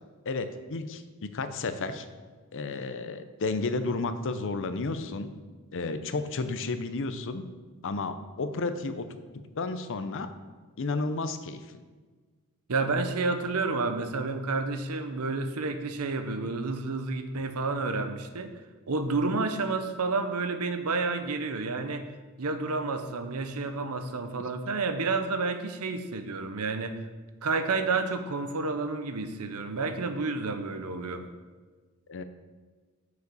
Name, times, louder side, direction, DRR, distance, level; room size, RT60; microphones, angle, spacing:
voice 1, 0.3-1.0 1.3-2.1 2.5-5.3 5.7-7.5 7.8-9.1 9.6-10.3 10.8-11.8 32.1-32.2, left 3 dB, 60° left, 10 dB, 0.6 m, -32 dB
voice 2, 12.7-18.5 18.9-22.1 22.4-27.0 27.4-31.3, right 3 dB, 80° right, 8 dB, 0.7 m, -30 dB
6.6 x 4.9 x 6.8 m, 1.4 s
head